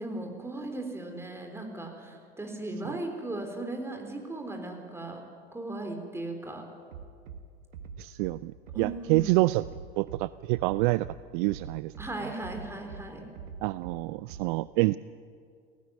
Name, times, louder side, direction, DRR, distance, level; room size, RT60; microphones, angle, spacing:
voice 1, 0.0-5.2 5.5-6.6 8.7-9.4 12.0-13.3, right 2 dB, 10° right, 3 dB, 3.7 m, -37 dB
Bass drum, 6.9-7.4 7.7-8.3 8.7-9.3 9.6-10.2 10.5-11.1 11.5-12.1 12.4-13.0 13.4-14.0 14.3-14.4, right 7 dB, 70° right, 1.5 m, -42 dB
voice 2, 8.0-9.6 10.0-11.1 11.3-11.9 12.2-12.3 13.6-15.0, right 20 dB, 55° right, 18 dB, 0.4 m, -27 dB
17.0 x 16.5 x 9.2 m, 2.2 s
figure-of-eight pair, 80°, 31 cm